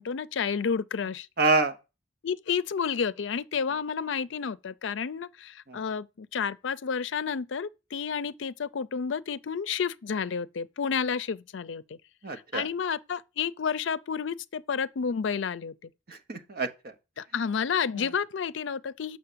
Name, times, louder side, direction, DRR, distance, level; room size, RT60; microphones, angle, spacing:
voice 1, 0.0-1.3 2.2-12.0 12.5-15.9 17.2-19.2, left 6 dB, 75° left, 0.5 m, -30 dB
voice 2, 1.4-1.8 5.7-5.8 12.2-12.7 16.1-16.9 17.9-18.1, right 3 dB, 50° right, 0.9 m, -27 dB
6.5 x 5.7 x 6.7 m
head